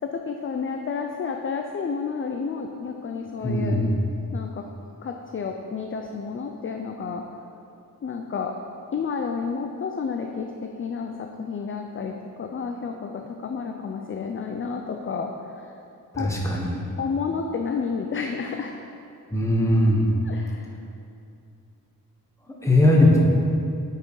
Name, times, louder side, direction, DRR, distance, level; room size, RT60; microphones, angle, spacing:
voice 1, 0.0-3.8 4.3-4.6 5.0-7.2 8.0-8.5 8.9-15.7 16.2-16.3 17.0-18.7 20.2-20.7, left 5 dB, 35° left, 4 dB, 0.4 m, -31 dB
voice 2, 3.4-4.0 16.1-16.8 19.3-20.1 22.6-23.2, left 1 dB, 10° left, -3 dB, 1.2 m, -19 dB
9.0 x 5.6 x 4.7 m, 2.6 s
wide cardioid pair, 165°, 35 cm